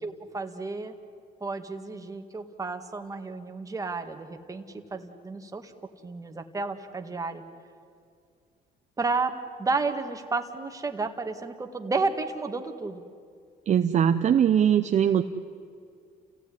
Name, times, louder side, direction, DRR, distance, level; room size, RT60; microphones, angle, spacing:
voice 1, 0.0-0.9 1.4-4.6 4.9-5.7 6.0-7.4 9.0-13.0, right 3 dB, 20° right, 5 dB, 2.0 m, -31 dB
voice 2, 13.7-15.2, right 9 dB, 45° right, 7 dB, 0.8 m, -21 dB
29.5 x 16.0 x 9.9 m, 2.3 s
cardioid pair, 110°, 17 cm